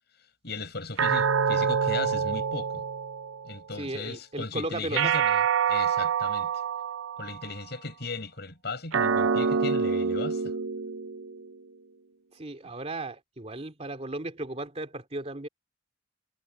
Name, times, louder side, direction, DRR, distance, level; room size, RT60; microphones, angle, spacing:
voice 1, 0.4-2.8 3.4-5.4 5.7-6.5 7.2-10.5, left 3 dB, 55° left, 6.8 m, -37 dB
sound 1, 1.0-3.6 4.9-7.5 8.9-11.5, right 6 dB, 85° right, 0.6 m, -26 dB
voice 2, 3.7-5.2 12.3-15.5, right 2 dB, 30° right, 2.6 m, -35 dB
head